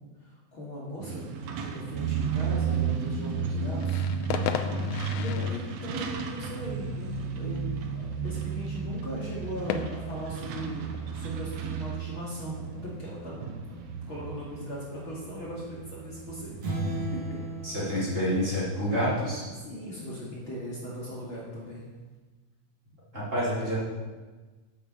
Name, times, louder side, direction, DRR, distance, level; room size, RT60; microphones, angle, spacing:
voice 1, 0.2-4.0 5.2-13.4 13.7-13.8 14.1-17.4 17.8-17.9 19.0-19.1 19.5-21.9, equal, 45° left, -6 dB, 3.0 m, -39 dB
Truck, 1.0-19.5, right 5 dB, 70° right, 2.3 m, -34 dB
sound 1, 3.8-11.4, left 8 dB, 80° left, 2.0 m, -38 dB
sound 2, 16.6-19.3, right 2 dB, 50° right, 3.6 m, -35 dB
voice 2, 17.6-19.4 23.1-23.8, equal, 25° right, -8 dB, 4.6 m, -28 dB
10.5 x 8.7 x 7.6 m, 1.3 s
omnidirectional pair, 3.5 m